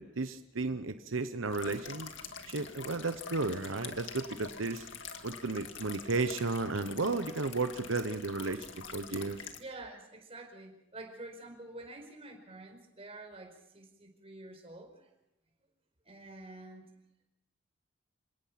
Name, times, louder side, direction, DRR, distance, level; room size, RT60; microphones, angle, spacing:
voice 1, 0.0-2.1 2.5-4.9 5.2-9.4, right 3 dB, 90° right, 9 dB, 1.0 m, -34 dB
sound 1, 1.5-9.6, left 6 dB, 70° left, 2.2 m, -46 dB
voice 2, 9.6-15.1 16.0-16.9, right 2 dB, 30° right, 4 dB, 4.7 m, -48 dB
28.0 x 18.0 x 6.0 m, 0.84 s
head